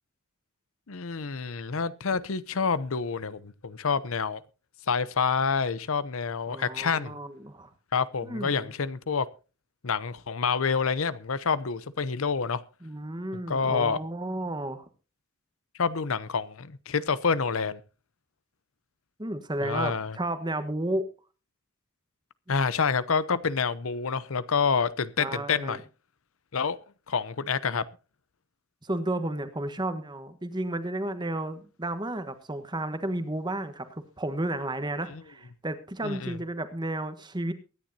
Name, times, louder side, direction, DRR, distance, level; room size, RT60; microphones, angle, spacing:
voice 1, 0.9-4.4 4.9-7.1 7.9-9.3 9.8-12.6 13.5-14.0 15.8-17.8 19.6-20.2 22.5-25.8 26.5-26.8 27.1-27.8 35.1-35.2 36.0-36.4, left 5 dB, 70° left, 0.7 m, -28 dB
voice 2, 6.5-7.7 8.2-8.7 12.8-14.9 19.2-21.1 25.2-25.8 28.8-37.5, right 1 dB, 20° right, 1.3 m, -32 dB
23.0 x 10.5 x 2.8 m
head